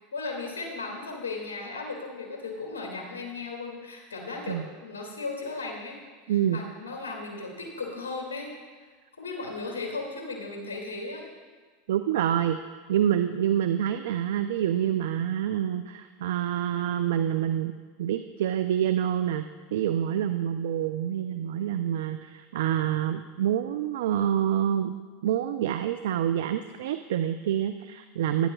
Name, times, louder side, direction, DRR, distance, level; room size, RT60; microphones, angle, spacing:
voice 1, 0.1-6.0 6.3-8.5 9.2-11.2, left 3 dB, 85° left, 0 dB, 2.3 m, -36 dB
voice 2, 6.3-6.6 11.9-12.6 12.9-17.7 18.0-19.4 19.7-24.9 25.2-28.5, right 10 dB, 75° right, 10 dB, 0.4 m, -27 dB
18.5 x 9.8 x 2.3 m, 1.5 s
hypercardioid pair, 95°, 0 cm